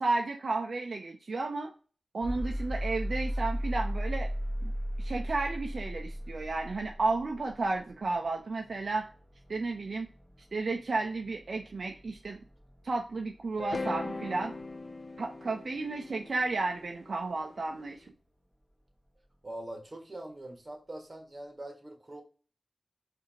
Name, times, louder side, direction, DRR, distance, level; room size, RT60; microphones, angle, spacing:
voice 1, 0.0-1.7 2.1-4.3 4.6-4.7 5.0-9.1 9.5-10.1 10.5-12.4 12.8-14.5 15.2-18.1, right 3 dB, 65° right, 3 dB, 0.5 m, -32 dB
sound 1, 2.2-18.1, equal, 5° left, 1.5 m, -39 dB
sound 2, 13.6-17.8, left 3 dB, 45° left, 0.5 m, -40 dB
voice 2, 19.4-22.2, right 1 dB, 35° right, 2 dB, 1.4 m, -43 dB
4.9 x 2.6 x 2.9 m, 0.38 s
cardioid pair, 55°, 0 cm